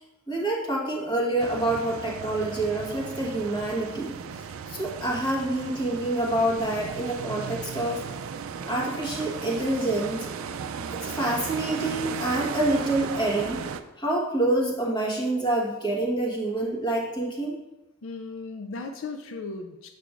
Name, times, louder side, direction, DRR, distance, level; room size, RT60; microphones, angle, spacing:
voice 1, 0.3-8.0 8.7-10.3 10.9-13.6 14.0-17.6, right 1 dB, 20° left, -3 dB, 1.2 m, -27 dB
sound 1, 1.4-13.8, right 6 dB, 85° right, 0.4 m, -36 dB
voice 2, 18.0-19.9, left 3 dB, 70° left, 6 dB, 0.4 m, -36 dB
6.7 x 6.7 x 2.4 m, 1.0 s
head